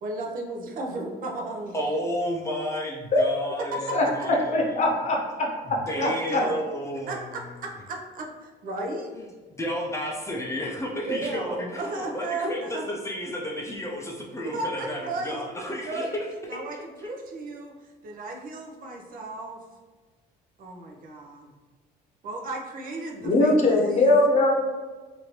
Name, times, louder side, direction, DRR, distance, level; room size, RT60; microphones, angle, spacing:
voice 1, 0.0-1.7 3.7-4.3 5.9-6.6 7.1-9.1 11.1-12.9 14.4-15.4 15.8-16.1 16.5-17.7 18.0-19.6 20.6-21.5 22.2-24.2, right 2 dB, 55° right, 0 dB, 0.6 m, -34 dB
voice 2, 1.7-4.9 5.9-7.4 9.2-9.3 9.6-16.3 16.5-16.6, equal, 15° left, -1 dB, 0.5 m, -32 dB
voice 3, 4.5-5.5 6.0-6.4 23.2-24.5, left 2 dB, 40° left, -1 dB, 0.8 m, -21 dB
3.0 x 2.6 x 2.9 m, 1.3 s
cardioid pair, 110°, 17 cm